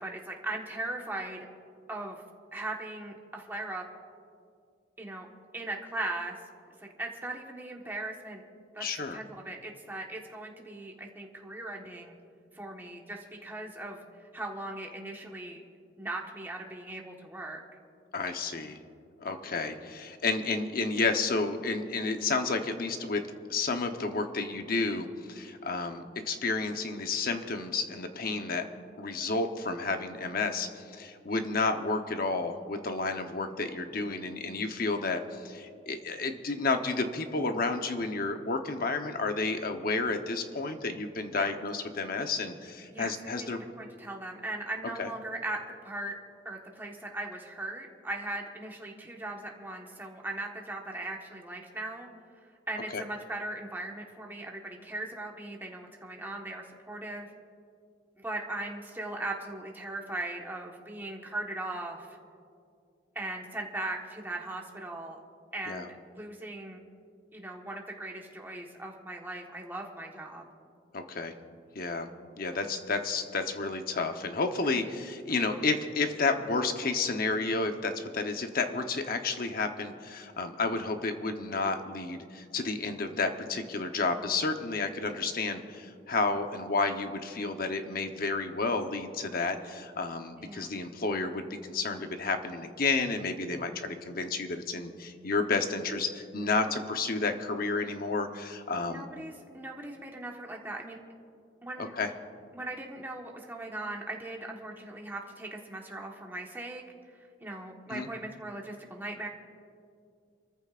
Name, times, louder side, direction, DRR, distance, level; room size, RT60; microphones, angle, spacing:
voice 1, 0.0-1.5 1.9-2.2 2.5-3.8 5.0-5.3 5.5-6.4 7.0-8.4 8.7-8.8 9.1-12.2 12.5-14.1 14.3-15.6 16.0-17.6 41.3-41.5 42.9-43.1 43.4-46.1 46.4-52.1 52.7-57.3 58.2-62.1 63.1-65.2 65.5-65.9 66.1-66.8 67.3-70.4 90.4-90.9 96.7-96.8 98.8-101.0 101.6-101.9 102.5-109.3, right 2 dB, 10° right, 0 dB, 1.3 m, -39 dB
voice 2, 8.8-9.2 18.1-18.8 19.2-23.2 23.5-28.6 29.0-43.6 45.0-45.1 52.9-53.0 65.7-65.9 70.9-71.3 71.7-72.1 72.4-99.1 101.8-102.1 107.9-108.1, left 3 dB, 55° left, 6 dB, 1.0 m, -31 dB
28.5 x 14.0 x 2.5 m, 2.4 s
head